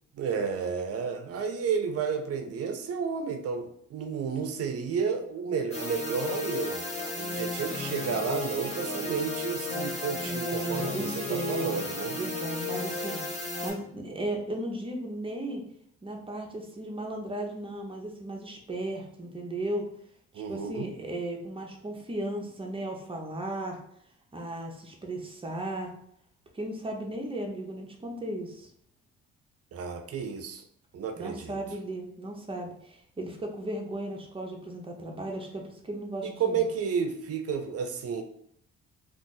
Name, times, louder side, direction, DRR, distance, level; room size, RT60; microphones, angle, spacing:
voice 1, 0.1-6.8 7.2-12.2 20.3-20.9 29.7-30.6 30.9-31.6 36.2-38.2, right 6 dB, 55° right, 7 dB, 0.5 m, -31 dB
sound 1, 5.7-13.7, left 2 dB, 20° left, 1.0 m, -34 dB
voice 2, 10.2-13.2 13.6-15.6 16.0-19.9 20.3-23.8 24.3-25.9 26.5-28.7 31.2-36.7, right 1 dB, 20° right, 1 dB, 0.7 m, -36 dB
2.5 x 2.5 x 3.8 m, 0.68 s
cardioid pair, 90°, 30 cm